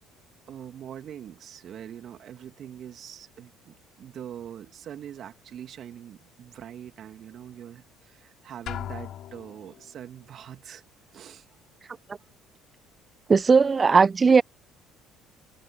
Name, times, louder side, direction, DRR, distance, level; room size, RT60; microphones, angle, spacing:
voice 1, 0.5-10.8 11.1-11.5, right 10 dB, 55° right, 2.7 m, -43 dB
Drum, 8.7-9.9, left 11 dB, 55° left, 5.9 m, -37 dB
voice 2, 13.3-14.4, right 5 dB, 30° right, 0.8 m, -17 dB
hypercardioid pair, 55°, 0 cm